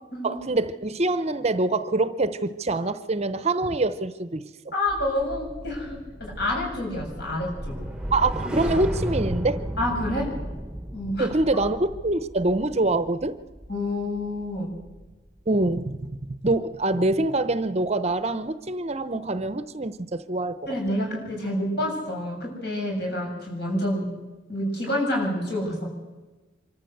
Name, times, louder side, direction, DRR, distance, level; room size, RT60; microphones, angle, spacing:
voice 1, 0.2-4.4 8.1-9.6 11.2-13.4 15.5-20.6, right 2 dB, 35° right, 13 dB, 0.8 m, -25 dB
voice 2, 4.7-7.8 9.8-10.3 10.9-11.3 13.7-14.7 20.7-24.1 24.5-25.9, left 1 dB, 60° left, 0 dB, 7.5 m, -28 dB
sound 1, 4.9-15.3 15.6-15.9, equal, 5° right, 1.1 m, -34 dB
25.5 x 14.0 x 7.9 m, 1.2 s
head